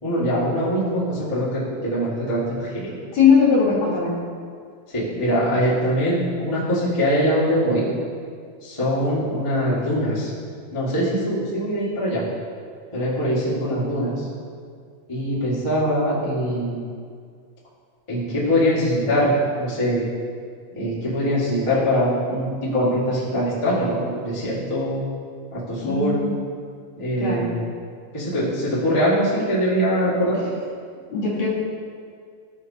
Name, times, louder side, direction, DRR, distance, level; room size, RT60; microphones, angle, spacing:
voice 1, 0.0-2.9 4.9-7.9 8.6-10.3 10.7-12.2 12.9-14.2 15.1-16.8 18.1-20.0 20.7-25.0 25.5-26.3 27.0-27.6 28.1-30.4, equal, 15° left, -9 dB, 1.5 m, -22 dB
voice 2, 3.1-4.1 25.8-26.3 27.2-27.5 31.1-31.5, left 5 dB, 60° left, -7 dB, 2.9 m, -19 dB
14.0 x 5.8 x 2.8 m, 2.1 s
omnidirectional pair, 3.6 m